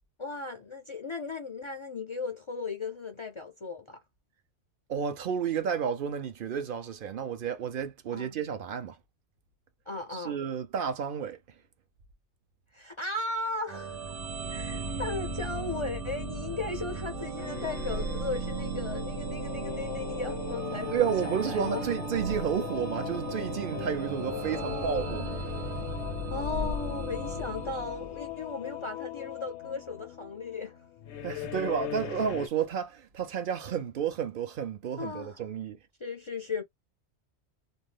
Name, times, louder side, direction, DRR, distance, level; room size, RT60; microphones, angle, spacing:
voice 1, 0.2-4.0 8.1-8.4 9.9-10.4 12.7-14.0 14.5-21.9 24.3-25.4 26.3-30.8 35.0-35.4 36.0-36.6, left 3 dB, 50° left, 0.3 m, -36 dB
voice 2, 4.9-9.0 10.1-11.4 20.9-25.3 31.2-35.8, right 8 dB, 60° right, 0.7 m, -31 dB
sound 1, 13.7-28.4, right 3 dB, 85° right, 1.0 m, -36 dB
sound 2, 17.4-32.5, left 11 dB, 80° left, 0.8 m, -40 dB
2.6 x 2.1 x 3.2 m
omnidirectional pair, 1.1 m